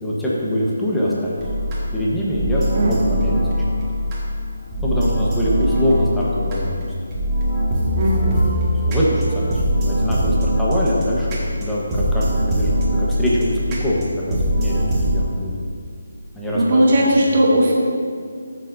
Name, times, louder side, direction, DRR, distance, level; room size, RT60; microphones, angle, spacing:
voice 1, 0.0-3.8 4.8-6.9 8.6-15.5 16.3-16.9 17.2-17.3, equal, 5° left, -7 dB, 1.2 m, -24 dB
sound 1, 1.4-15.2, equal, 20° right, 1.6 m, -22 dB
voice 2, 2.7-3.2 7.9-8.4 16.5-17.7, right 1 dB, 45° right, -4 dB, 1.9 m, -17 dB
13.5 x 6.8 x 2.7 m, 2.2 s
figure-of-eight pair, 165°, 0 cm